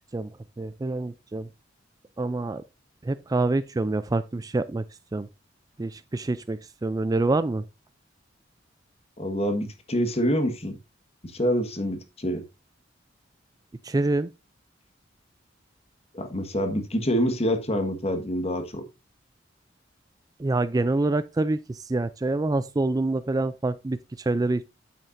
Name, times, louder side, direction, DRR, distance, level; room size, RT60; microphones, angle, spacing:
voice 1, 0.6-1.5 2.2-2.6 3.0-4.8 5.1-5.3 5.8-7.6 13.8-14.3 20.4-24.6, right 2 dB, 20° right, 0.3 m, -26 dB
voice 2, 9.2-10.8 11.3-12.4 16.1-18.8, equal, 35° left, 1.4 m, -26 dB
9.0 x 8.5 x 2.6 m
head